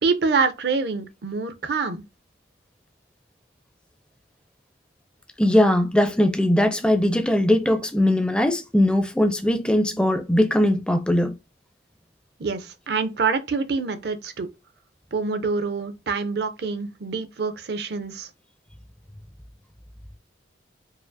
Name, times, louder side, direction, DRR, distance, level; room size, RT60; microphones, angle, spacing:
voice 1, 0.0-2.0 12.4-14.5 15.1-18.3, right 4 dB, 60° right, 0.5 m, -26 dB
voice 2, 5.4-11.3, left 1 dB, 5° left, 0.4 m, -20 dB
4.8 x 2.4 x 2.5 m
head